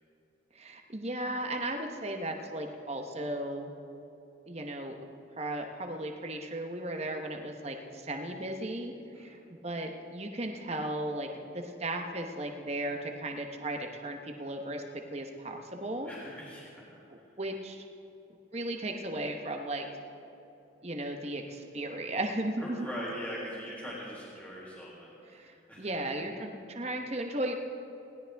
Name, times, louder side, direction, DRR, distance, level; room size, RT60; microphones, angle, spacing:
voice 1, 0.5-3.7 4.5-4.9 5.4-9.4 9.6-11.3 11.5-16.1 17.4-17.8 18.5-19.9 20.8-22.9 25.3-27.5, right 1 dB, 35° right, 3 dB, 1.0 m, -36 dB
voice 2, 16.0-17.3 22.6-25.9, equal, 5° left, -6 dB, 3.6 m, -42 dB
20.5 x 17.0 x 3.5 m, 2.9 s
head